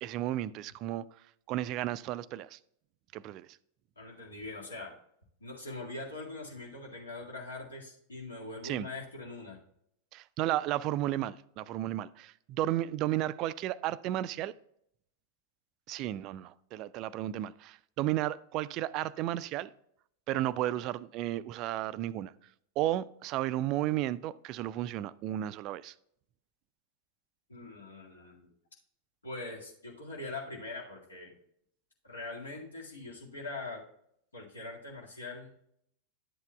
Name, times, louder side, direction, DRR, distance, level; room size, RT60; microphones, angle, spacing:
voice 1, 0.0-1.1 1.5-2.6 3.1-3.6 8.6-8.9 10.1-14.5 15.9-19.7 20.3-22.3 22.8-25.9, right 14 dB, 40° right, 0.3 m, -33 dB
voice 2, 4.0-5.0 5.4-9.6 27.5-28.5 29.2-31.3 32.0-33.8 34.3-35.5, left 2 dB, 75° left, 2.0 m, -42 dB
11.5 x 8.0 x 2.3 m
figure-of-eight pair, 90°, 0 cm